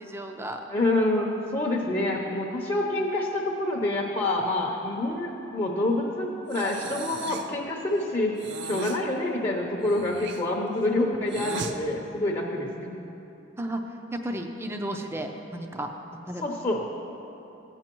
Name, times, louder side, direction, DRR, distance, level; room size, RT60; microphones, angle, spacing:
voice 1, 0.0-0.6 13.6-13.8 14.1-15.9 16.3-16.4, right 1 dB, 10° right, 4 dB, 0.5 m, -33 dB
voice 2, 0.7-8.4 8.6-12.9 16.4-16.8, left 2 dB, 30° left, -2 dB, 0.7 m, -27 dB
Breathing, 6.5-7.6 8.3-9.0 9.8-11.8, right 4 dB, 60° right, 0.5 m, -37 dB
15.5 x 8.8 x 3.0 m, 2.9 s
head